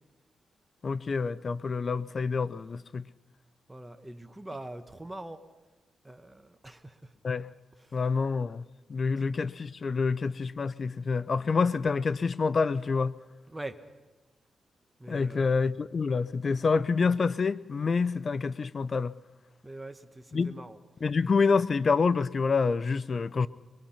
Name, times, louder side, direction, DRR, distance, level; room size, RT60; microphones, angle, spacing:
voice 1, 0.8-3.0 7.2-7.5 7.9-8.6 8.9-13.2 15.1-19.1 20.3-20.5 21.0-23.5, left 4 dB, 45° left, 0.6 m, -27 dB
voice 2, 3.7-5.4 6.0-7.1 7.8-8.0 9.2-9.3 13.5-13.8 15.0-15.6 19.6-20.8, right 1 dB, 15° right, 1.2 m, -43 dB
22.5 x 22.5 x 5.8 m
cardioid pair, 95°, 0 cm